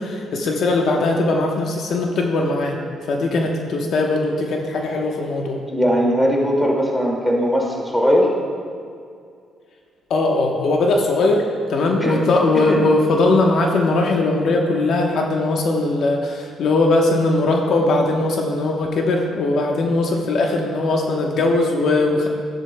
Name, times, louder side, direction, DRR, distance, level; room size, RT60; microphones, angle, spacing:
voice 1, 0.0-2.8 3.1-5.6 10.1-22.3, left 2 dB, 65° left, 1 dB, 1.0 m, -19 dB
voice 2, 5.7-8.3 12.0-12.3 12.7-12.8, equal, 5° left, -2 dB, 2.1 m, -19 dB
13.0 x 10.5 x 2.2 m, 2.2 s
cardioid pair, 90°, 0 cm